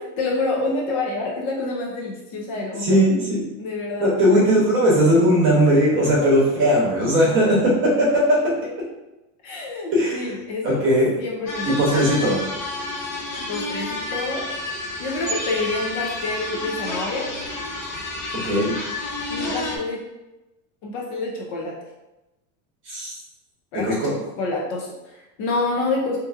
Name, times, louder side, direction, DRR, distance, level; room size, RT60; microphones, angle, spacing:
voice 1, 0.2-3.0 3.6-4.1 6.1-6.2 9.4-10.8 11.2-12.1 13.4-14.5 15.0-17.3 19.3-20.1 20.8-21.8 23.7-26.2, left 3 dB, 45° left, -2 dB, 0.6 m, -28 dB
voice 2, 2.8-3.4 4.0-8.5 9.9-10.3 10.6-11.1 11.6-12.4 18.4-18.8 22.9-23.2 23.7-24.1, equal, 30° right, -4 dB, 0.9 m, -18 dB
sound 1, 11.5-19.8, left 2 dB, 70° left, 1.1 m, -30 dB
3.6 x 2.6 x 2.5 m, 0.99 s
cardioid pair, 175°, 41 cm